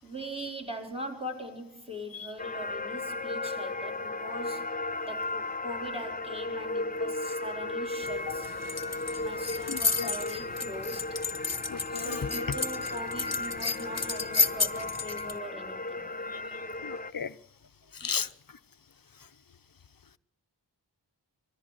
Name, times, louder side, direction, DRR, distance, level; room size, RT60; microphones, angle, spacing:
voice 1, 0.0-4.7 5.0-8.5 9.2-11.2 11.9-16.1 18.0-18.1, equal, 15° right, 3 dB, 4.5 m, -41 dB
sound 1, 2.4-17.1, left 2 dB, 20° left, 0.8 m, -35 dB
sound 2, 8.0-15.4, left 4 dB, 35° left, 1.3 m, -33 dB
voice 2, 9.7-10.1 11.7-12.2 16.3-16.4 16.8-17.4 17.9-18.3, left 6 dB, 50° left, 14 dB, 0.9 m, -35 dB
21.5 x 14.0 x 9.0 m, 0.70 s
wide cardioid pair, 45°, 43 cm